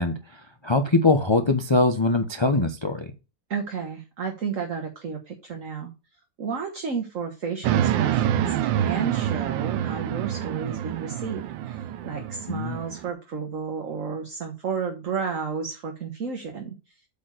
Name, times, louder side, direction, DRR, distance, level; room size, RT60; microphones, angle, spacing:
voice 1, 0.0-3.1 12.5-12.8, left 2 dB, 40° left, 7 dB, 0.4 m, -22 dB
voice 2, 3.5-5.9 6.4-16.7, right 6 dB, 45° right, 3 dB, 1.6 m, -32 dB
sound 1, 7.6-13.1, right 11 dB, 85° right, 1.4 m, -27 dB
8.4 x 4.4 x 6.5 m, 0.29 s
omnidirectional pair, 2.0 m